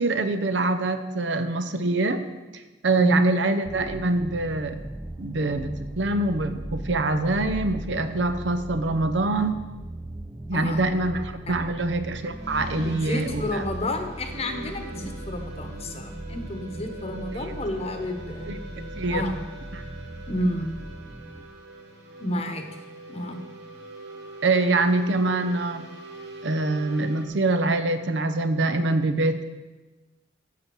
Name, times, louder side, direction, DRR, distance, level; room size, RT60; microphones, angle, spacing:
voice 1, 0.0-2.2 2.8-4.8 5.2-9.6 10.5-13.6 17.5-17.6 18.5-18.6 19.0-19.3 19.7-19.8 24.4-25.9 26.4-29.4, right 2 dB, 85° right, 10 dB, 0.7 m, -24 dB
sound 1, 3.6-21.5, right 1 dB, 10° right, 0.3 m, -38 dB
sound 2, 12.2-27.3, right 2 dB, 65° right, 2.1 m, -43 dB
voice 2, 12.8-18.6 19.1-19.4 20.3-20.7 22.2-22.6 23.1-23.4, left 1 dB, 35° left, 6 dB, 1.0 m, -30 dB
8.4 x 6.8 x 6.1 m, 1.2 s
head